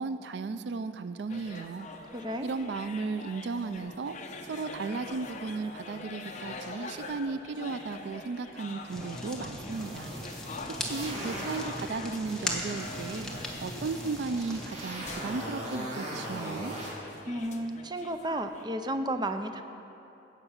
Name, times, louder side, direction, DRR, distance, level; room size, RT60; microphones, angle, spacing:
voice 1, 0.0-1.9 2.4-4.1 4.4-10.1 10.7-13.3 13.6-16.7, right 4 dB, 75° right, 11 dB, 0.4 m, -35 dB
sound 1, 1.3-18.6, left 3 dB, 45° left, 0.9 m, -44 dB
voice 2, 2.1-2.5 17.3-19.6, right 1 dB, 25° right, 8 dB, 0.6 m, -33 dB
Fire, 8.9-14.7, left 1 dB, 5° left, 1.3 m, -38 dB
sound 2, 9.6-11.8 12.2-16.9, right 1 dB, 40° right, 2.5 m, -40 dB
16.5 x 6.0 x 7.2 m, 2.9 s
head